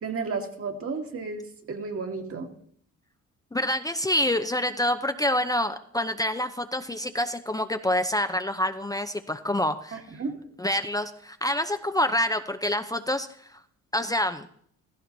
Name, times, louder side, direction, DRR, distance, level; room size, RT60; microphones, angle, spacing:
voice 1, 0.0-2.5 9.9-10.5, right 4 dB, 50° right, 4 dB, 2.2 m, -33 dB
voice 2, 3.5-10.0 10.6-13.6 13.9-14.5, left 1 dB, 10° left, 7 dB, 0.7 m, -27 dB
16.0 x 14.5 x 4.0 m, 0.63 s
cardioid pair, 90°, 30 cm